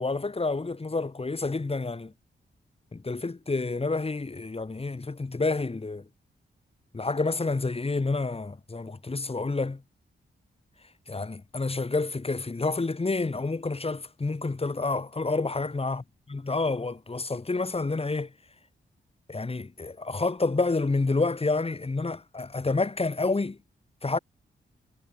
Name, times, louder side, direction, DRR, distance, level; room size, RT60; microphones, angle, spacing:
voice 1, 0.0-2.1 2.9-6.0 6.9-9.8 11.1-16.0 16.3-18.3 19.3-23.6 24.0-24.2, left 3 dB, 30° left, 2.5 m, -29 dB
cardioid pair, 70°, 20 cm